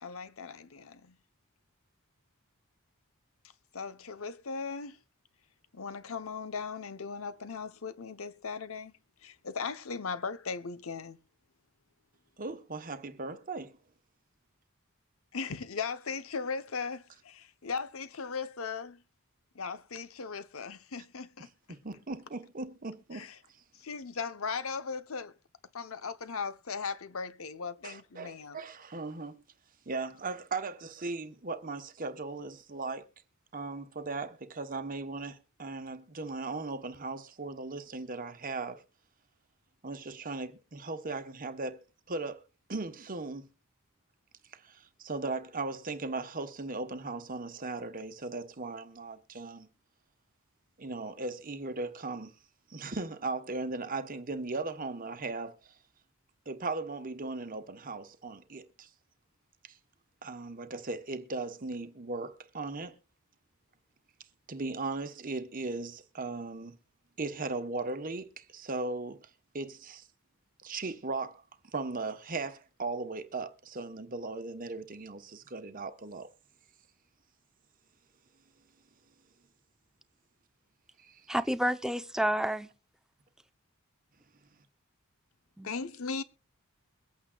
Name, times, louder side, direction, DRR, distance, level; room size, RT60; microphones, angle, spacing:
voice 1, 0.0-1.2 3.7-5.0 5.7-8.9 9.2-11.2 15.3-19.0 19.5-21.5 23.1-23.3 23.8-25.3 25.7-28.6 85.6-86.2, left 5 dB, 70° left, 0.8 m, -38 dB
voice 2, 12.4-13.8 21.7-23.3 27.8-29.4 29.9-33.0 33.5-38.8 39.8-42.4 42.7-43.5 44.5-49.7 50.8-52.3 52.7-55.7 56.5-58.9 59.6-59.7 60.2-63.0 64.5-66.8 67.2-70.1 70.6-71.4 71.7-76.3 81.0-81.2, right 3 dB, 40° right, 1.0 m, -38 dB
voice 3, 81.3-82.7 85.6-85.7, equal, 5° right, 0.6 m, -29 dB
23.0 x 8.7 x 2.3 m
head